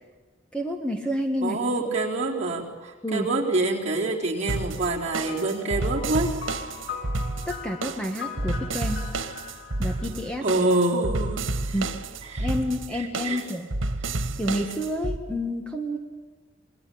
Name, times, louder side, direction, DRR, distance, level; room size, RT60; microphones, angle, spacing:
voice 1, 0.5-1.6 3.0-3.3 7.5-9.0 9.8-10.4 11.7-11.9 12.4-13.7 14.4-16.0, equal, 5° left, 3 dB, 1.7 m, -29 dB
voice 2, 1.4-6.3 10.4-11.4 11.7-11.8 12.3-12.5 12.9-13.4, right 2 dB, 35° right, -2 dB, 4.3 m, -26 dB
sound 1, 4.5-15.2, right 2 dB, 85° right, 1.7 m, -30 dB
sound 2, 5.3-11.0, left 6 dB, 75° left, 3.0 m, -40 dB
27.5 x 21.0 x 8.8 m, 1.4 s
head